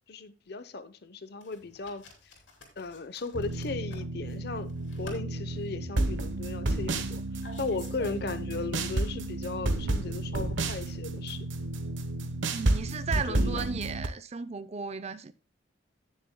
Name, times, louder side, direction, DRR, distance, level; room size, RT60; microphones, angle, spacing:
voice 1, 0.1-2.0 2.8-7.2 7.6-11.5 13.3-13.7, left 3 dB, 60° left, 0.8 m, -37 dB
sound 1, 1.4-8.5, left 2 dB, 80° left, 3.3 m, -49 dB
sound 2, 3.3-14.1, right 2 dB, 90° right, 1.0 m, -31 dB
voice 2, 12.5-15.3, right 5 dB, 35° right, 0.5 m, -35 dB
16.5 x 6.8 x 2.2 m
head